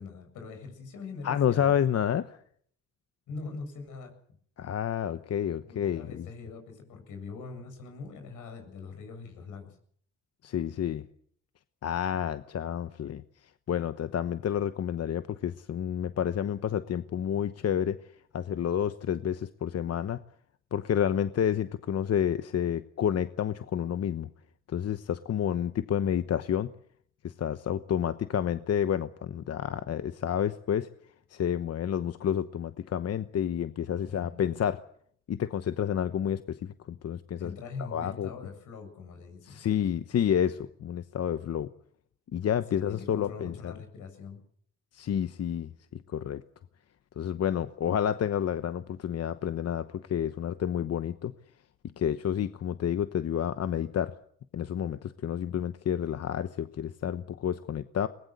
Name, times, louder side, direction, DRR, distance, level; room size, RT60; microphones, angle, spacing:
voice 1, 0.0-1.7 3.3-4.1 5.6-9.8 34.0-34.4 37.4-39.6 42.7-44.4, left 4 dB, 85° left, 5 dB, 8.0 m, -43 dB
voice 2, 1.2-2.4 4.6-6.3 10.4-11.1 11.8-13.2 13.7-18.0 18.3-20.2 20.7-24.3 24.7-26.7 27.2-30.9 31.3-34.8 35.3-37.5 37.8-38.3 39.4-41.7 42.3-43.7 44.9-46.4 47.2-51.3 52.0-54.1 54.5-58.1, left 9 dB, 55° left, 11 dB, 1.1 m, -29 dB
22.5 x 20.0 x 8.0 m, 0.62 s
cardioid pair, 90°, 30 cm